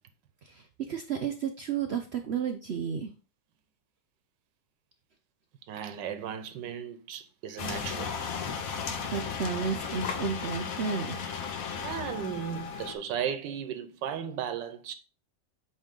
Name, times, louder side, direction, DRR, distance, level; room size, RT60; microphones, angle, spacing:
voice 1, 0.4-3.1 9.1-11.2, right 6 dB, 70° right, 0.6 m, -32 dB
voice 2, 5.7-8.2 11.8-14.9, right 8 dB, 85° right, 1.4 m, -35 dB
sound 1, 7.6-12.9, left 6 dB, 60° left, 1.1 m, -35 dB
8.1 x 3.4 x 3.7 m
omnidirectional pair, 1.9 m